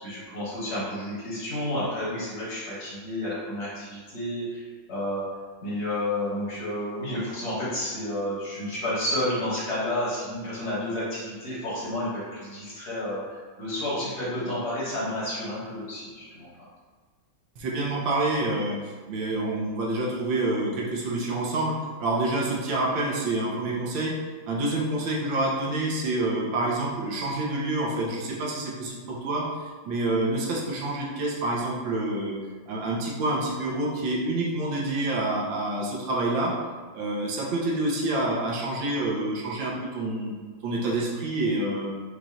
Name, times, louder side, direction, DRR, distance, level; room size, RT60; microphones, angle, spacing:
voice 1, 0.0-5.2 5.6-16.5, left 1 dB, 55° left, -8 dB, 1.7 m, -31 dB
voice 2, 17.6-24.1 24.5-29.4 29.8-32.3 32.7-36.5 36.9-40.3 40.6-41.9, right 2 dB, 80° right, -3 dB, 1.5 m, -27 dB
4.8 x 2.9 x 2.4 m, 1.5 s
omnidirectional pair, 2.1 m